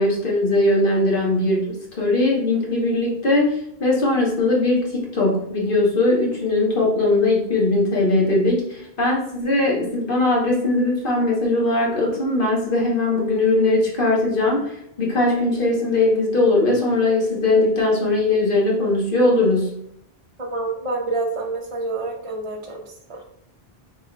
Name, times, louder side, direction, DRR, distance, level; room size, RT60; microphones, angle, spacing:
voice 1, 0.0-19.8, left 2 dB, 55° left, -2 dB, 1.5 m, -20 dB
voice 2, 20.4-23.2, right 3 dB, 35° right, -1 dB, 0.7 m, -28 dB
5.9 x 3.8 x 2.4 m, 0.73 s
omnidirectional pair, 1.1 m